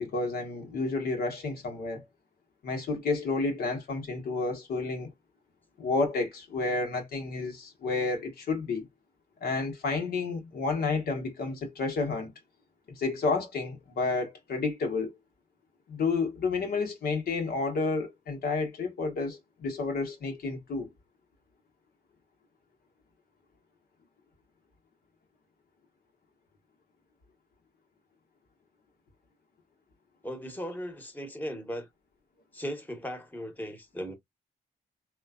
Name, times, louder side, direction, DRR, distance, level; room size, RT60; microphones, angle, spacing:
voice 1, 0.0-2.0 2.6-5.1 5.8-8.9 9.4-12.3 13.0-15.1 15.9-20.9, left 3 dB, 70° left, 0.9 m, -30 dB
voice 2, 30.2-31.9 32.5-34.1, equal, 10° left, 1.0 m, -37 dB
3.1 x 2.2 x 2.3 m
supercardioid pair, 55°, 17 cm